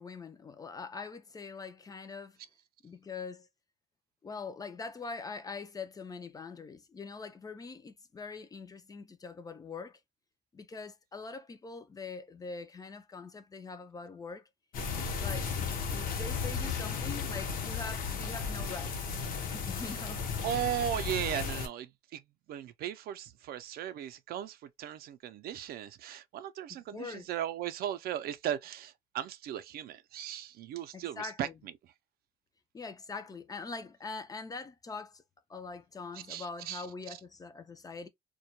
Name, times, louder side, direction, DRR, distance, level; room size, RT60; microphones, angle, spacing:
voice 1, 0.0-2.4 2.8-3.5 4.2-10.0 10.5-14.4 15.0-18.9 19.4-20.3 26.7-27.3 30.9-31.5 32.7-35.2 35.5-38.1, left 4 dB, 20° left, 0.3 m, -43 dB
sound 1, 14.7-21.7, left 5 dB, 55° left, 0.7 m, -35 dB
voice 2, 20.4-22.2 22.5-31.5 36.3-36.8, right 11 dB, 65° right, 0.4 m, -37 dB
2.2 x 2.1 x 2.8 m
cardioid pair, 110°, 17 cm